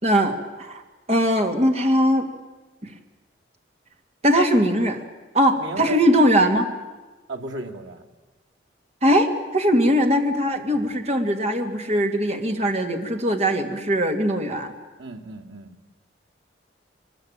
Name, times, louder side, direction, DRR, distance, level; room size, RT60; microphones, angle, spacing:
voice 1, 0.0-0.8 1.1-2.3 2.8-2.9 4.2-5.0 5.3-6.7 9.0-14.7, equal, 35° right, 5 dB, 2.2 m, -20 dB
voice 2, 5.5-6.0 7.3-8.0 9.8-9.9 10.7-10.9 15.0-15.7, right 3 dB, 90° right, 1 dB, 2.5 m, -35 dB
23.5 x 21.0 x 8.9 m, 1.2 s
head